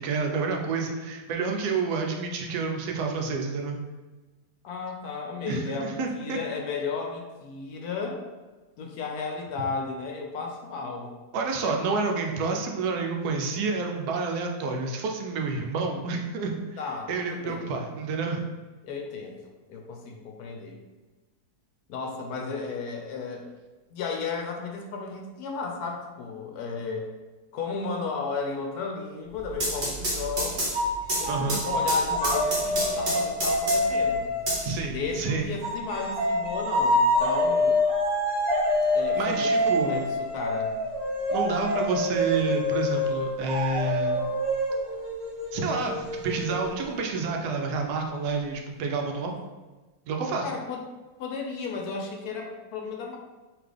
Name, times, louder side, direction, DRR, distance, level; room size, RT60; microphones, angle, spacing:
voice 1, 0.0-3.8 5.5-6.4 11.3-16.5 17.1-18.4 31.3-31.6 34.6-35.4 39.1-40.0 41.3-44.2 45.5-49.3 50.1-50.4, right 4 dB, 75° right, 2 dB, 1.1 m, -29 dB
voice 2, 4.6-8.2 8.8-11.2 16.8-17.8 18.8-19.4 19.7-20.8 21.9-23.5 23.9-27.1 27.5-30.7 31.2-34.3 34.9-37.8 38.9-40.8 50.4-50.8 51.2-53.2, left 4 dB, 70° left, 1 dB, 1.0 m, -34 dB
sound 1, 29.3-34.0 34.5-35.4, right 1 dB, 45° right, 1.4 m, -30 dB
sound 2, 30.7-35.1 35.6-47.0, left 1 dB, 15° left, 1.3 m, -26 dB
3.9 x 3.0 x 3.3 m, 1.2 s
omnidirectional pair, 1.8 m